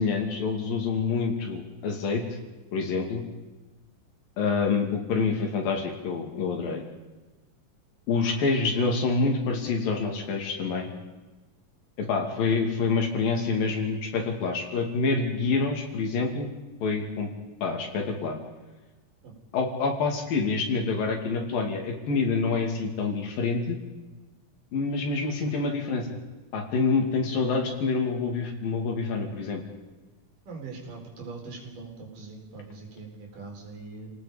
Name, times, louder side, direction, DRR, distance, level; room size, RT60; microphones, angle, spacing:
voice 1, 0.0-2.2 2.7-3.2 4.4-6.8 8.1-10.9 12.0-16.5 16.8-17.3 17.6-18.4 19.5-23.8 24.7-26.1 26.5-29.6, left 4 dB, 70° left, 2 dB, 4.2 m, -27 dB
voice 2, 30.5-34.1, right 4 dB, 60° right, -1 dB, 5.6 m, -42 dB
30.0 x 18.5 x 5.3 m, 1.2 s
omnidirectional pair, 4.2 m